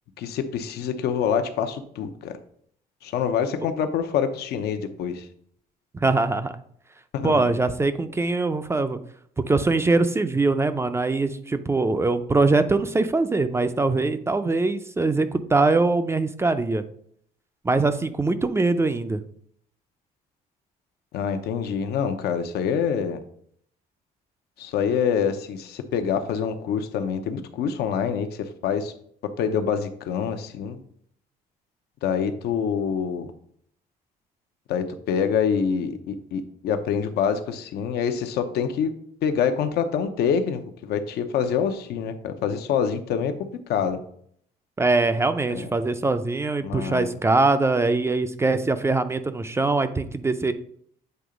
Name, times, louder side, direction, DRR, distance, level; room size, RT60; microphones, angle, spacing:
voice 1, 0.2-2.3 3.0-5.3 7.1-7.5 21.1-23.2 24.6-28.9 29.2-30.8 32.0-33.3 34.7-38.9 39.2-43.3 43.7-44.0 45.5-45.7 46.6-47.2, left 7 dB, 75° left, 8 dB, 0.8 m, -26 dB
voice 2, 5.9-6.5 7.2-9.0 9.5-16.8 17.6-19.2 44.8-50.5, right 3 dB, 15° right, 10 dB, 0.4 m, -22 dB
7.9 x 2.8 x 5.0 m, 0.64 s
cardioid pair, 110°, 17 cm